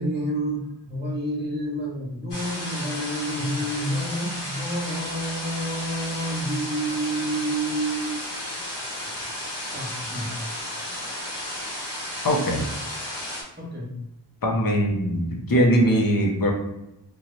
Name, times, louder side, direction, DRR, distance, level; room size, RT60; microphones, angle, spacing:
voice 1, 0.0-8.2 9.0-9.2 9.7-10.4 10.8-10.9 13.6-14.0, right 1 dB, 25° right, -3 dB, 0.9 m, -29 dB
sound 1, 2.3-13.4, left 1 dB, 75° left, 1.0 m, -33 dB
voice 2, 12.2-12.6 14.4-16.5, equal, 55° left, 0 dB, 0.7 m, -21 dB
2.7 x 2.3 x 3.0 m, 0.90 s
wide cardioid pair, 50°, 42 cm